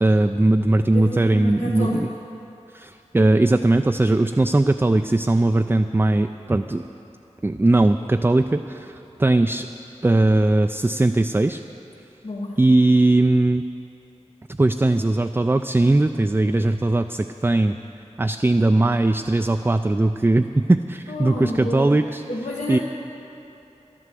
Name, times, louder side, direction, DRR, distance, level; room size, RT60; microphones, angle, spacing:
voice 1, 0.0-2.1 2.7-6.8 7.4-9.7 10.0-11.6 12.6-13.6 14.6-17.8 18.2-22.2 22.7-22.8, right 2 dB, 20° right, 7 dB, 0.3 m, -19 dB
voice 2, 0.9-2.1 12.2-12.6 21.1-21.8 22.3-22.8, left 1 dB, 75° left, -5 dB, 1.2 m, -29 dB
11.0 x 11.0 x 7.5 m, 3.0 s
wide cardioid pair, 55°, 12 cm